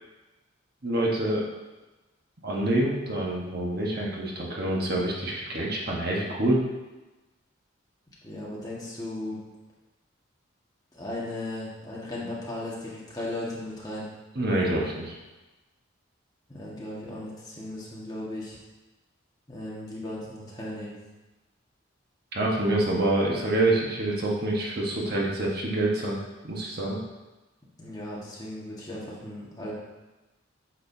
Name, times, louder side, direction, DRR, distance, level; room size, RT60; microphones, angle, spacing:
voice 1, 0.8-1.4 2.4-6.6 14.4-15.2 22.3-26.2 26.4-27.0, right 1 dB, 50° right, -3 dB, 1.3 m, -26 dB
voice 2, 8.2-9.4 10.9-14.1 16.5-18.6 19.5-21.0 27.8-29.7, left 1 dB, 20° left, -6 dB, 1.6 m, -36 dB
8.6 x 6.6 x 2.7 m, 1.1 s
head